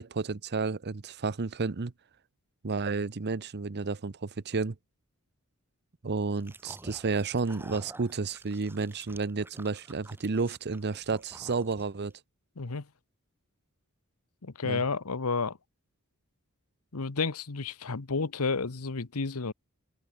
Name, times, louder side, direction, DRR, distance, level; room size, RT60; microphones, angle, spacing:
voice 1, 0.0-1.9 2.6-4.8 6.0-12.1 14.6-14.8, right 4 dB, 50° right, 0.7 m, -31 dB
sound 1, 6.4-12.1, right 2 dB, 10° right, 1.3 m, -50 dB
voice 2, 12.6-12.9 14.4-15.6 16.9-19.5, left 4 dB, 80° left, 1.1 m, -31 dB
open air
head